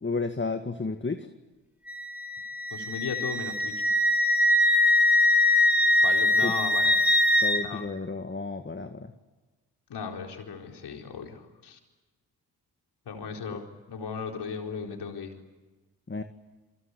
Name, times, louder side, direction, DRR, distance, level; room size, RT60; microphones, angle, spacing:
voice 1, 0.0-1.3 6.4-6.5 7.4-9.1 13.5-13.6 16.1-16.2, left 3 dB, 25° left, 7 dB, 2.0 m, -32 dB
Wind instrument woodwind instrument, 1.9-7.6, left 1 dB, 5° right, 4.3 m, -22 dB
voice 2, 2.7-3.7 6.0-6.9 7.6-7.8 9.9-11.8 13.1-15.3, left 6 dB, 70° left, 2 dB, 4.4 m, -36 dB
28.0 x 23.5 x 8.5 m, 1.2 s
hypercardioid pair, 40°, 42 cm